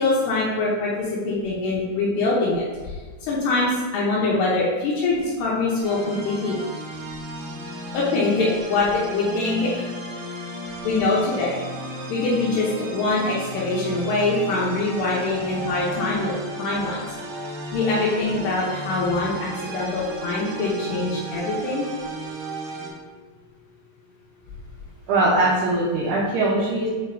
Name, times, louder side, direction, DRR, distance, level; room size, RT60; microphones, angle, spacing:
voice 1, 0.0-6.6 7.9-9.7 10.8-11.6 12.1-16.3 16.6-17.1 17.7-21.9, left 3 dB, 85° left, -5 dB, 2.4 m, -23 dB
sound 1, 5.8-22.9, right 1 dB, 70° right, 2.9 m, -34 dB
voice 2, 25.1-26.9, right 2 dB, 85° right, -7 dB, 2.3 m, -21 dB
8.6 x 4.2 x 2.6 m, 1.4 s
omnidirectional pair, 6.0 m